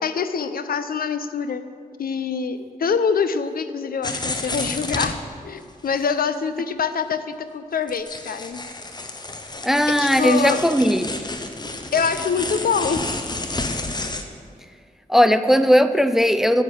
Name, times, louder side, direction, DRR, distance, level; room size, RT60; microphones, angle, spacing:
voice 1, 0.0-1.7 2.0-5.2 5.4-8.6 9.9-10.6 11.9-13.0, left 6 dB, 80° left, 11 dB, 0.5 m, -25 dB
sound 1, 4.0-5.2 5.9-6.0 6.3-6.4 6.7-6.8 7.9-14.2, left 2 dB, 30° left, 0.7 m, -30 dB
voice 2, 9.6-11.1 15.1-16.6, equal, ahead, 11 dB, 0.4 m, -17 dB
9.2 x 7.3 x 6.2 m, 2.1 s
wide cardioid pair, 95°, 15 cm